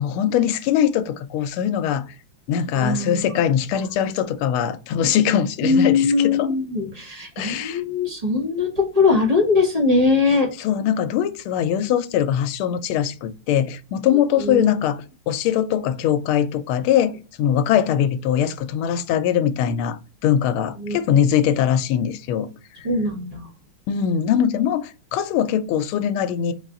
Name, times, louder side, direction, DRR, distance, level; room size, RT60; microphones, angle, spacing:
voice 1, 0.0-2.0 2.5-6.5 7.4-7.8 10.6-17.1 17.4-22.5 23.9-26.5, left 9 dB, 90° left, 1.4 m, -21 dB
voice 2, 2.7-3.3 5.6-10.5 14.4-14.7 20.8-21.0 22.8-23.5, left 4 dB, 30° right, 0.7 m, -21 dB
4.2 x 2.4 x 3.6 m
omnidirectional pair, 2.3 m